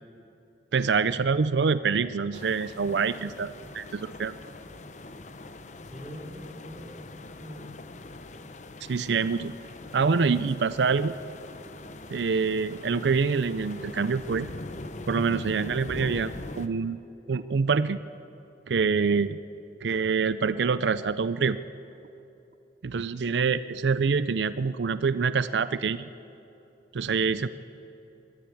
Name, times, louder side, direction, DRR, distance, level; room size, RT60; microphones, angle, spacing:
voice 1, 0.7-4.3 8.9-9.5 9.9-11.1 12.1-14.5 15.1-17.0 17.3-18.0 18.7-19.4 19.8-21.6 22.8-26.0 26.9-27.5, right 5 dB, 80° right, 14 dB, 0.5 m, -26 dB
sound 1, 2.3-16.7, left 2 dB, 40° left, 0.8 m, -42 dB
voice 2, 5.8-7.7 27.2-27.5, equal, ahead, -4 dB, 4.0 m, -44 dB
22.5 x 13.5 x 8.6 m, 2.9 s
head